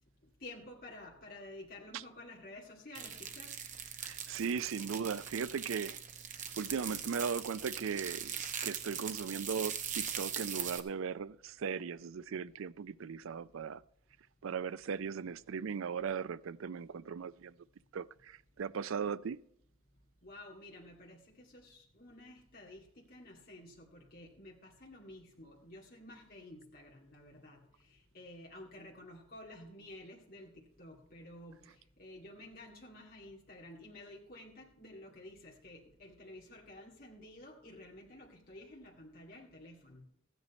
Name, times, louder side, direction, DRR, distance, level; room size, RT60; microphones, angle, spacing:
voice 1, 0.4-3.5 20.2-27.6 28.1-31.6 32.0-40.0, left 1 dB, 45° left, 2.2 m, -52 dB
sound 1, 2.9-10.8, right 8 dB, 35° right, 0.9 m, -41 dB
voice 2, 4.0-6.0 6.6-13.8 14.4-17.5 17.9-19.4, right 6 dB, 70° right, 0.4 m, -38 dB
14.5 x 9.2 x 4.2 m
head